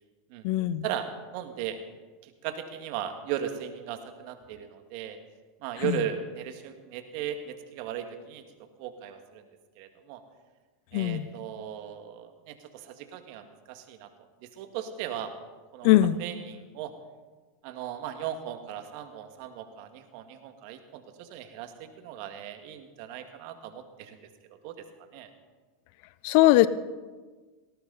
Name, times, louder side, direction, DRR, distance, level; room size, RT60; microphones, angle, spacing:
voice 1, 0.4-0.8 5.8-6.0 10.9-11.3 15.8-16.2 26.2-26.7, left 15 dB, 60° left, 17 dB, 0.7 m, -21 dB
voice 2, 1.3-1.8 2.2-5.2 5.6-8.4 8.8-9.4 9.8-10.2 10.9-14.1 14.6-15.3 15.7-15.9 16.2-16.9 17.6-24.3 24.6-24.8 25.1-25.3, right 10 dB, 60° right, 7 dB, 1.9 m, -37 dB
19.0 x 18.0 x 4.1 m, 1.4 s
hypercardioid pair, 95°, 0 cm